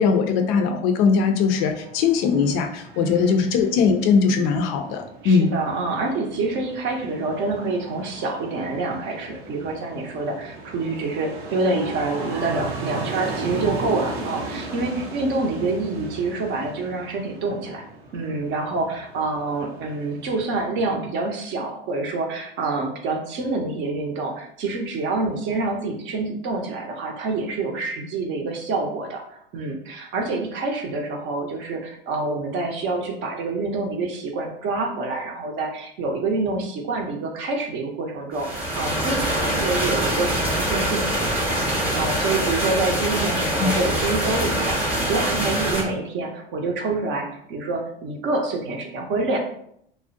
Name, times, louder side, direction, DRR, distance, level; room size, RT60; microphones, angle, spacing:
voice 1, 0.0-5.5 43.6-43.7, left 5 dB, 50° left, 5 dB, 0.4 m, -20 dB
sound 1, 1.1-20.6, right 3 dB, 90° right, 0.7 m, -37 dB
voice 2, 3.0-3.5 5.2-17.8 18.1-49.4, right 3 dB, 40° right, 2 dB, 0.6 m, -27 dB
sound 2, 38.3-45.8, right 1 dB, 5° right, 0.7 m, -24 dB
2.4 x 2.0 x 2.5 m, 0.70 s
hypercardioid pair, 90°, 30 cm